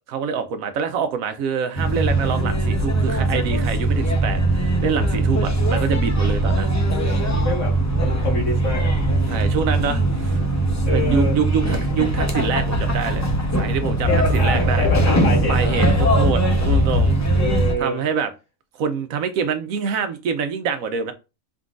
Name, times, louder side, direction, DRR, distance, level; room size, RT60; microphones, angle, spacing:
voice 1, 0.1-6.7 9.3-10.4 10.9-13.3 13.6-14.9 15.5-17.1 17.8-18.3 18.7-21.1, right 6 dB, 75° right, 1.0 m, -25 dB
sound 1, 1.8-17.7, right 1 dB, 20° left, 0.4 m, -20 dB
voice 2, 7.3-8.9 10.8-11.4 14.1-15.8 17.3-18.0, left 2 dB, 55° left, 1.8 m, -27 dB
4.5 x 3.7 x 2.5 m
omnidirectional pair, 1.5 m